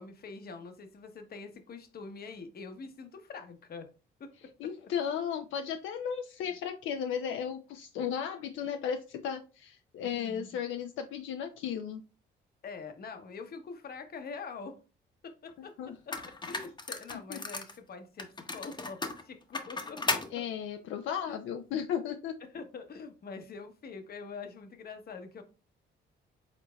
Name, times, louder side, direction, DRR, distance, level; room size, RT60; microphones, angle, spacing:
voice 1, 0.0-3.9 4.2-4.7 10.0-10.5 12.6-14.8 15.2-16.2 16.5-20.5 21.3-21.4 22.5-25.4, left 4 dB, 50° left, 0.9 m, -45 dB
voice 2, 4.6-12.0 15.8-15.9 17.3-17.4 20.3-22.3, left 8 dB, 75° left, 0.4 m, -35 dB
sound 1, 15.5-15.6 16.1-17.8 18.2-20.3, left 3 dB, 20° left, 0.8 m, -35 dB
5.1 x 3.9 x 2.2 m
cardioid pair, 90°, 20 cm